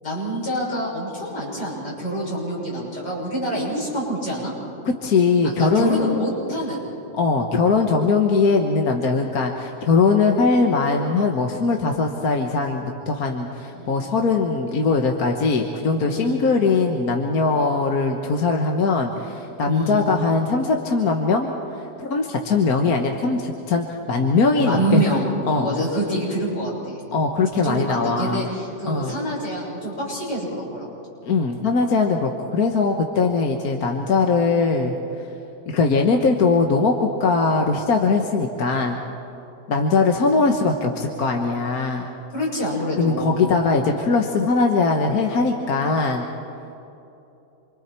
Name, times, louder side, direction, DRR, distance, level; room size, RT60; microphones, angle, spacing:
voice 1, 0.0-4.5 5.4-6.8 13.7-14.1 16.0-16.4 19.7-20.0 24.6-27.0 27.5-30.9 42.3-43.3, right 1 dB, 75° left, -5 dB, 7.4 m, -26 dB
voice 2, 4.8-6.3 7.2-21.5 22.0-25.0 25.5-25.8 27.1-28.4 28.9-29.1 31.2-34.9 35.7-36.9 37.2-39.0 39.7-42.1 43.0-46.2, left 4 dB, 60° left, 2 dB, 1.7 m, -20 dB
28.0 x 25.0 x 4.5 m, 2.9 s
omnidirectional pair, 1.8 m